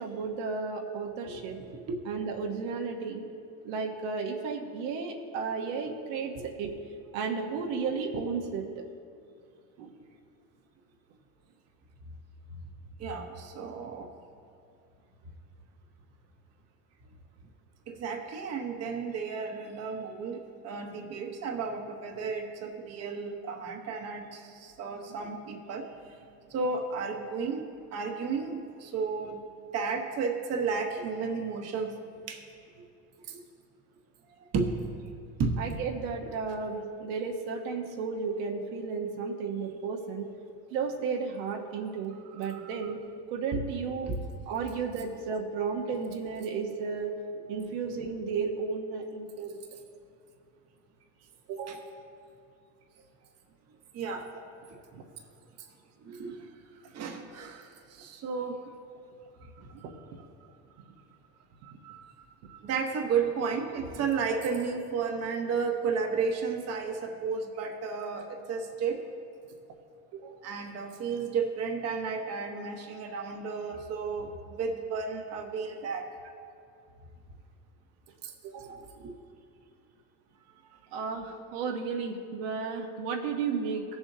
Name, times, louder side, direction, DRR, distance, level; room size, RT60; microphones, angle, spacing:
voice 1, 0.0-1.6 2.1-3.2 3.6-6.7 7.1-8.7 9.8-9.9 35.6-40.3 40.7-43.0 43.3-44.1 44.5-47.1 47.5-49.6 51.5-51.9 54.3-54.4 54.9-55.0 59.8-59.9 66.8-66.9 70.1-70.4 78.4-78.8 80.9-83.8, right 5 dB, 75° right, 1 dB, 1.1 m, -33 dB
voice 2, 13.0-14.1 17.9-25.9 26.5-27.6 27.9-29.4 29.7-32.0 32.3-32.4 32.8-32.9 33.3-33.4 34.4-35.0 35.4-35.7 36.2-36.3 42.5-42.9 44.1-44.2 51.7-51.8 53.9-54.3 56.0-56.5 56.9-58.6 61.6-62.1 62.5-69.0 70.4-76.1 78.2-78.3 79.0-79.1, right 5 dB, 40° right, 3 dB, 1.1 m, -33 dB
17.0 x 7.1 x 2.8 m, 2.5 s
cardioid pair, 130°, 37 cm